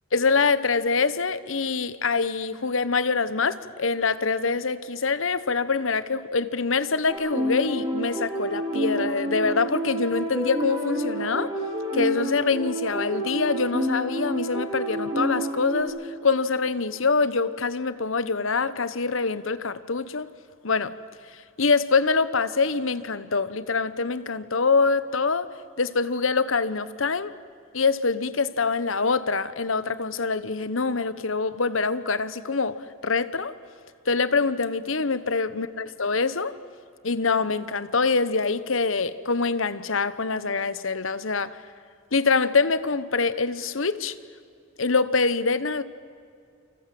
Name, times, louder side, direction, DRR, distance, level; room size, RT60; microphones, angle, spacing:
voice 1, 0.1-11.6 11.9-20.3 20.6-20.9 21.6-27.3 27.7-33.5 34.1-36.6 37.0-41.6 42.1-44.2 44.8-45.8, left 4 dB, 80° left, 1.2 m, -25 dB
sound 1, 7.1-15.8, equal, 20° right, 4.6 m, -29 dB
29.0 x 26.0 x 7.7 m
head